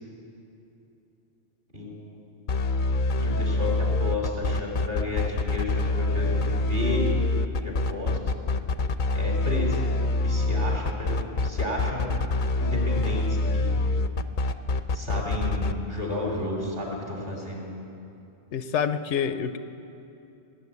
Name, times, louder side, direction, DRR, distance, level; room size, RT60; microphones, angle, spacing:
voice 1, 1.7-2.3 3.2-7.1 7.6-8.2 9.1-9.8 10.2-12.2 12.6-13.7 14.9-17.6, left 2 dB, 55° right, -1 dB, 3.7 m, -32 dB
sound 1, 2.5-15.7, left 2 dB, 55° left, 0.7 m, -25 dB
voice 2, 18.5-19.6, left 7 dB, 80° left, 11 dB, 1.0 m, -27 dB
18.5 x 7.8 x 9.8 m, 2.8 s
omnidirectional pair, 1.2 m